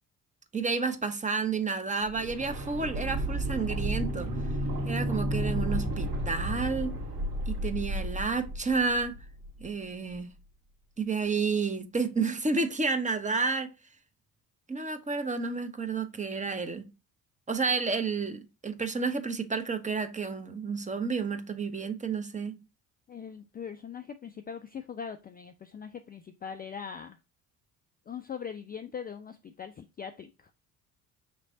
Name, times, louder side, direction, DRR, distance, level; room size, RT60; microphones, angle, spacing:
voice 1, 0.5-4.3 4.9-7.0 7.5-9.2 9.6-10.3 11.0-13.7 14.7-16.9 17.5-22.6, right 4 dB, 15° right, 0.8 m, -30 dB
sound 1, 2.0-9.8 10.1-10.2, right 1 dB, 60° right, 1.7 m, -32 dB
voice 2, 23.1-27.2 28.1-30.5, left 7 dB, 20° left, 0.4 m, -41 dB
5.8 x 3.1 x 2.6 m
hypercardioid pair, 55°, 45 cm